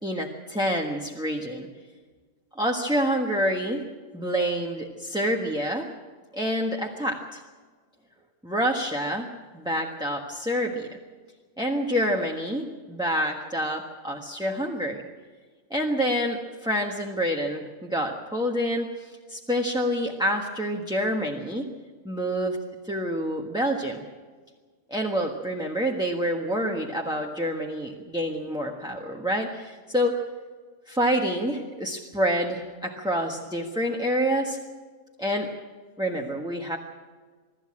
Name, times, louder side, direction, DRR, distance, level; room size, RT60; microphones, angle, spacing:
voice 1, 0.0-1.7 2.5-3.8 4.1-5.9 6.3-7.4 8.4-9.3 9.5-10.9 11.6-15.0 15.7-21.7 22.0-24.0 24.9-30.2 30.9-34.6 35.2-35.5 36.0-36.8, equal, 5° right, 0 dB, 1.3 m, -27 dB
24.5 x 13.0 x 8.7 m, 1.5 s
omnidirectional pair, 1.6 m